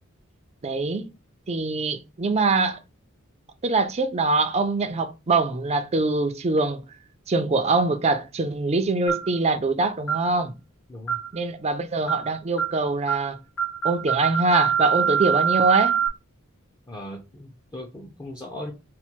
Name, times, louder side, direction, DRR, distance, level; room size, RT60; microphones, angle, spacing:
voice 1, 0.6-1.0 1.5-2.8 3.6-6.8 7.3-10.5 11.3-13.4 13.8-16.0, right 3 dB, 30° right, 0.5 m, -23 dB
sound 1, 9.1-9.4 10.1-10.3 11.1-11.4 12.1-12.3 12.6-12.8 13.1-13.3 13.6-16.1, right 8 dB, 90° left, 0.9 m, -24 dB
voice 2, 10.9-11.2 16.9-18.7, left 1 dB, 20° left, 0.6 m, -38 dB
4.3 x 2.2 x 4.4 m
head